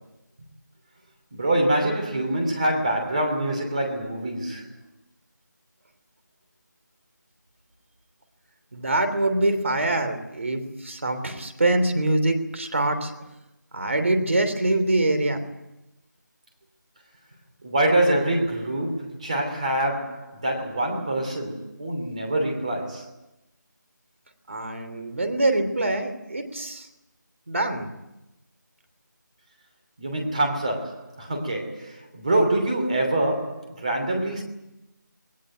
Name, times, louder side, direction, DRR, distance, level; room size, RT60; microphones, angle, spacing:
voice 1, 1.3-4.8 17.6-23.1 30.0-34.4, right 1 dB, 20° right, 3.0 m, -25 dB
voice 2, 8.7-13.1 13.7-15.4 24.5-26.9 27.5-27.9, right 2 dB, 40° right, 3.1 m, -24 dB
20.5 x 19.0 x 9.1 m
figure-of-eight pair, 175°, 10 cm